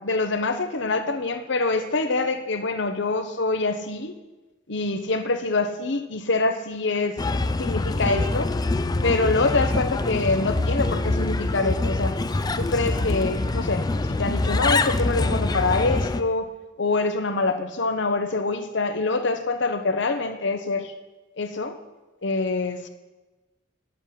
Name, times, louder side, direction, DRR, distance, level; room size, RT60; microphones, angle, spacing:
voice 1, 0.0-4.1 4.7-7.2 7.6-8.5 9.0-12.2 12.5-16.5 16.8-20.9 21.4-21.7 22.2-22.9, left 3 dB, 65° left, 8 dB, 1.0 m, -25 dB
Bird, 7.2-16.2, left 2 dB, 20° left, 0.4 m, -25 dB
10.0 x 8.1 x 6.4 m, 1.1 s
head